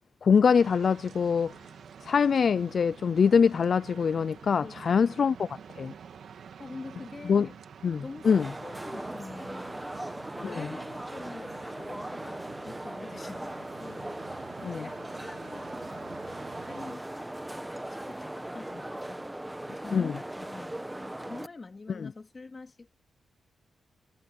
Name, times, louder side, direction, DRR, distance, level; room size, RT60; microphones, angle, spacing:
voice 1, 0.2-1.5 2.0-5.5 5.8-5.9 7.3-7.5 7.8-8.5 10.6-10.7 14.6-14.8 19.9-20.1 22.0-22.1, left 6 dB, 50° left, 0.3 m, -24 dB
sound 1, 0.5-16.9, right 7 dB, 70° right, 1.6 m, -48 dB
voice 2, 4.6-5.2 6.6-7.6 8.0-9.8 10.4-16.2 16.6-17.1 17.4-22.9, left 3 dB, 30° left, 3.0 m, -46 dB
sound 2, 8.2-21.5, right 1 dB, 10° right, 1.0 m, -39 dB
wide cardioid pair, 135°, 0 cm